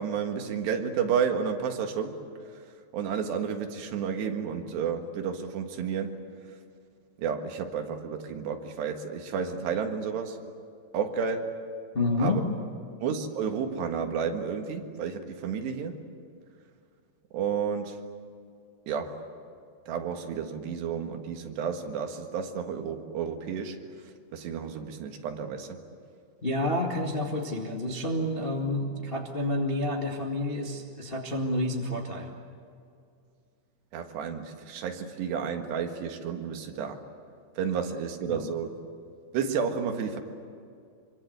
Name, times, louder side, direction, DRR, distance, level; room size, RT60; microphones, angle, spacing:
voice 1, 0.0-2.1 2.9-6.1 7.2-10.4 10.9-11.6 12.2-12.4 13.0-16.0 17.3-18.0 18.9-19.2 19.9-23.8 24.3-25.8 33.9-37.0 37.6-38.8 39.3-40.2, right 6 dB, 75° right, 4 dB, 3.8 m, -31 dB
voice 2, 11.9-12.4 26.4-32.3 38.2-38.5, left 1 dB, 75° left, 0 dB, 0.5 m, -29 dB
26.0 x 24.5 x 8.1 m, 2.3 s
omnidirectional pair, 5.0 m